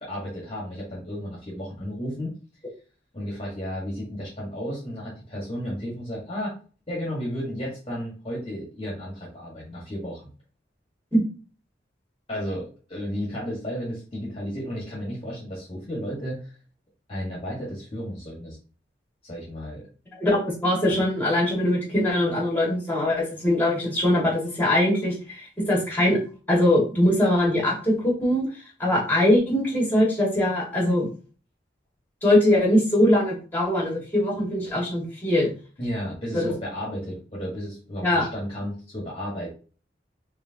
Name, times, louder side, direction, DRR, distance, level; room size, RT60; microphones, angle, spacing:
voice 1, 0.0-2.3 3.1-6.5 6.9-10.3 12.3-16.6 17.1-18.6 19.2-19.9 20.9-21.0 35.8-39.5, equal, 30° left, -5 dB, 1.5 m, -33 dB
voice 2, 20.2-26.2 26.5-28.5 28.8-31.1 32.2-35.5 36.3-36.5 38.0-38.2, left 1 dB, 10° left, -4 dB, 2.0 m, -22 dB
4.6 x 3.2 x 2.8 m, 0.38 s
head